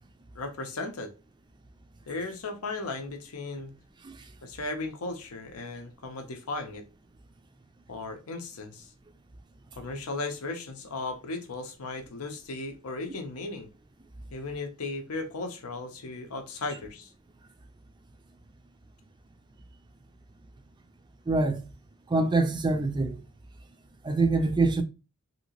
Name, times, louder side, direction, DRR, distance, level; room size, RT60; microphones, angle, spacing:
voice 1, 0.3-1.1 2.1-3.7 4.4-6.8 7.9-8.9 9.8-13.7 14.3-17.1, left 3 dB, 85° left, 0.7 m, -36 dB
voice 2, 21.3-21.6 22.1-23.2 24.0-24.8, right 3 dB, 20° right, 0.4 m, -25 dB
2.9 x 2.8 x 2.8 m
head